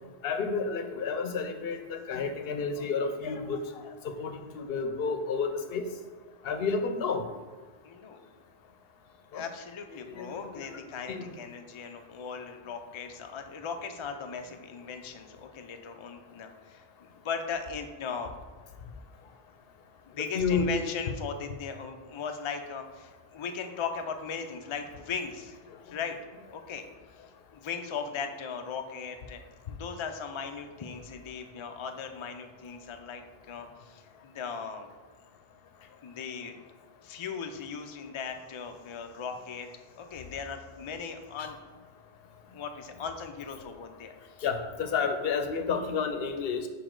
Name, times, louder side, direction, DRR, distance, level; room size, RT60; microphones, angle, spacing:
voice 1, 0.2-5.9 6.4-7.3 9.3-9.4 10.1-10.8 11.1-11.3 20.3-20.7 41.4-41.5 44.4-46.7, left 5 dB, 70° left, 7 dB, 0.8 m, -31 dB
voice 2, 7.8-8.2 9.3-16.8 17.2-18.3 20.2-25.6 25.8-26.2 26.5-26.8 27.5-33.2 33.5-34.9 36.0-36.5 37.0-39.7 40.0-41.6 42.5-44.1, left 6 dB, 50° left, 5 dB, 0.3 m, -38 dB
5.1 x 4.9 x 3.7 m, 1.4 s
omnidirectional pair, 1.0 m